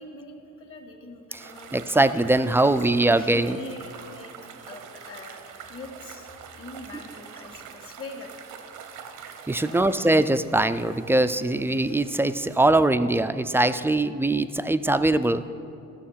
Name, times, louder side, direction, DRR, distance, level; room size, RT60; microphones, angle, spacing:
voice 1, 0.0-1.8 2.6-4.3 4.6-6.3 6.6-8.3 9.2-10.0, left 2 dB, 45° left, 2 dB, 1.8 m, -43 dB
sound 1, 1.4-12.6, right 7 dB, 85° right, 0.9 m, -45 dB
voice 2, 1.7-3.6 9.5-15.5, right 2 dB, 10° right, 11 dB, 0.3 m, -22 dB
14.0 x 6.5 x 5.7 m, 2.6 s
cardioid pair, 90°, 30 cm